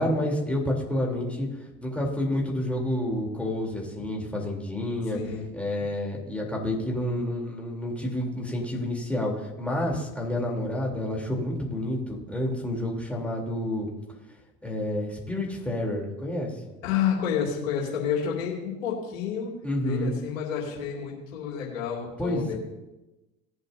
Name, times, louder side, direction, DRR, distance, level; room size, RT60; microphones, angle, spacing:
voice 1, 0.0-1.5 1.8-5.2 5.5-13.9 14.6-16.5 19.6-20.2 22.2-22.6, left 1 dB, 5° left, -2 dB, 3.8 m, -29 dB
voice 2, 5.1-5.5 16.8-19.5 19.8-22.6, left 8 dB, 75° left, -3 dB, 2.9 m, -29 dB
18.5 x 8.1 x 2.9 m, 1.0 s
hypercardioid pair, 65°, 39 cm